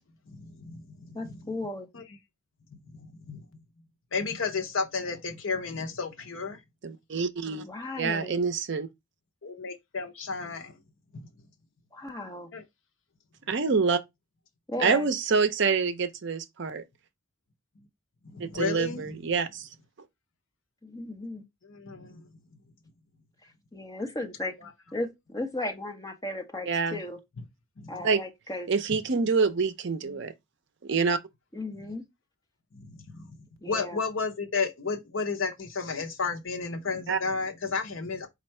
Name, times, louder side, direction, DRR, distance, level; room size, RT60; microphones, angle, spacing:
voice 1, 0.3-1.4 1.9-2.0 2.9-3.4 4.1-6.6 9.4-10.7 11.1-11.3 12.5-12.6 18.2-19.2 21.6-22.2 24.6-24.7 27.8-28.0 32.7-33.3 33.7-38.3, left 4 dB, 65° left, 0.7 m, -33 dB
voice 2, 1.1-1.9 7.6-8.4 11.9-12.5 14.7-15.1 20.8-21.4 23.7-24.6 24.9-27.2 27.9-28.7 30.0-30.2 31.5-32.0 33.6-34.0, left 1 dB, 15° left, 0.7 m, -35 dB
voice 3, 6.8-7.6 8.0-8.9 13.5-14.0 14.8-16.8 18.4-19.7 26.7-27.0 28.0-28.2 28.7-30.3 30.9-31.2 37.1-37.2, right 5 dB, 55° right, 0.5 m, -26 dB
4.4 x 2.4 x 4.2 m
head